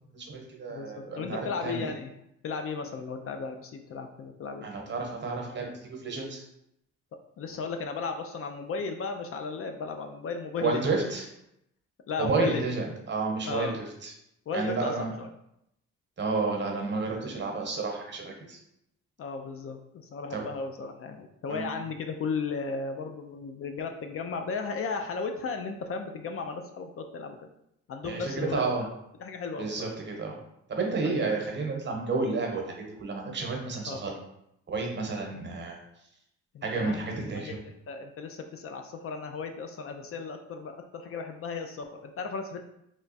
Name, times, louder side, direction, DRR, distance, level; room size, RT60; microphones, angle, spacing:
voice 1, 0.1-1.8 4.6-6.4 10.6-11.3 12.2-14.1 14.5-15.1 16.2-18.6 20.3-20.4 21.5-21.7 28.0-28.8 29.6-30.4 30.7-34.1 34.7-35.8 36.6-37.6, right 3 dB, 35° right, 1 dB, 1.0 m, -31 dB
voice 2, 0.7-2.1 2.4-4.7 7.4-10.8 12.1-12.7 13.4-13.8 14.5-15.3 19.2-27.4 27.9-28.9 29.2-29.9 31.0-31.2 33.9-34.0 36.5-37.6 37.9-42.6, left 4 dB, 50° left, 5 dB, 0.4 m, -35 dB
3.1 x 2.2 x 4.0 m, 0.79 s
cardioid pair, 90°, 30 cm